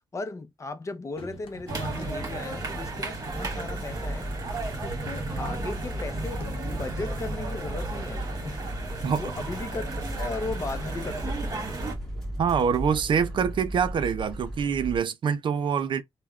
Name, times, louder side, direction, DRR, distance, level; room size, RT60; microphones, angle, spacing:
voice 1, 0.1-4.3 4.8-8.6 8.9-11.7, left 3 dB, 35° left, 0.6 m, -37 dB
sound 1, 1.2-6.0 6.3-6.4, left 2 dB, 85° left, 0.8 m, -49 dB
sound 2, 1.7-11.9, right 2 dB, 40° right, 1.3 m, -34 dB
sound 3, 3.3-15.0, equal, 5° left, 1.7 m, -36 dB
voice 2, 12.4-16.0, right 7 dB, 60° right, 0.4 m, -25 dB
3.4 x 2.2 x 2.3 m
cardioid pair, 90°, 9 cm